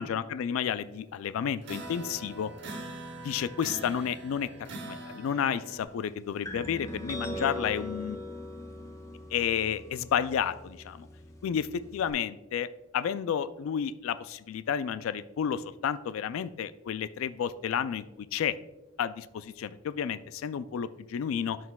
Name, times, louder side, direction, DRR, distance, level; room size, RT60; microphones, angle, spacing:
voice 1, 0.0-2.5 3.2-8.2 9.3-11.1 11.4-12.7 12.9-18.6 19.0-21.6, left 8 dB, 80° left, 15 dB, 0.3 m, -31 dB
sound 1, 1.6-5.8, right 2 dB, 55° right, 1.1 m, -42 dB
sound 2, 6.4-12.1, equal, 15° left, 0.7 m, -41 dB
11.0 x 6.3 x 2.2 m, 1.1 s
head